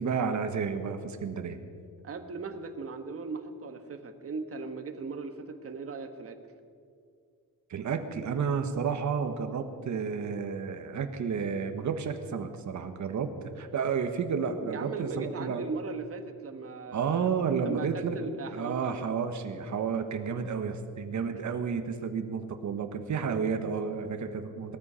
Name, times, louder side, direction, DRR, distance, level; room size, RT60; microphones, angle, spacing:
voice 1, 0.0-1.6 7.7-15.6 16.9-18.2 18.5-24.8, right 6 dB, 60° right, 7 dB, 1.3 m, -31 dB
voice 2, 2.0-6.4 14.7-17.3 17.6-19.0, right 4 dB, 45° right, 6 dB, 1.3 m, -38 dB
19.5 x 13.5 x 5.6 m, 2.2 s
wide cardioid pair, 125°, 32 cm